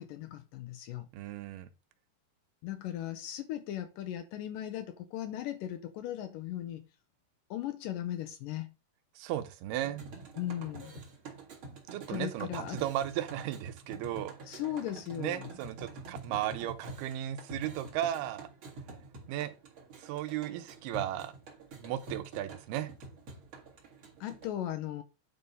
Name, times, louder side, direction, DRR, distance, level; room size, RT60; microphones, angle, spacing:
voice 1, 0.0-1.1 2.6-6.8 7.5-8.7 10.4-11.0 12.1-12.8 14.5-15.5 24.2-25.0, left 12 dB, 80° left, 2.0 m, -37 dB
voice 2, 1.1-1.7 9.2-10.1 11.9-14.3 15.2-18.5 19.3-19.5 20.0-21.3 21.7-22.9, right 12 dB, 90° right, 2.8 m, -35 dB
sound 1, 9.8-24.5, right 3 dB, 45° right, 2.0 m, -47 dB
9.6 x 3.4 x 5.4 m
omnidirectional pair, 4.4 m